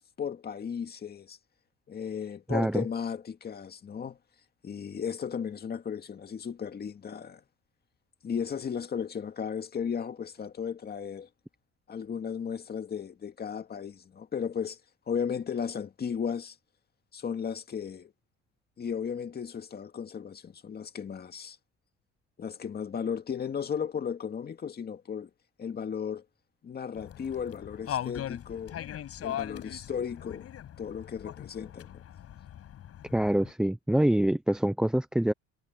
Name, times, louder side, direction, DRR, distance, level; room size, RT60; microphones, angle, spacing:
voice 1, 0.2-1.4 1.9-4.2 4.6-7.4 8.2-11.3 11.9-14.8 15.1-16.6 17.1-18.1 18.8-21.6 22.4-25.3 25.6-26.3 26.6-28.8 29.2-30.5 30.8-32.0, left 7 dB, 35° left, 2.1 m, -35 dB
voice 2, 2.5-2.8 33.1-35.3, right 1 dB, 5° right, 0.4 m, -25 dB
sound 1, 26.9-33.5, left 10 dB, 55° left, 7.1 m, -40 dB
cardioid pair, 140°, 29 cm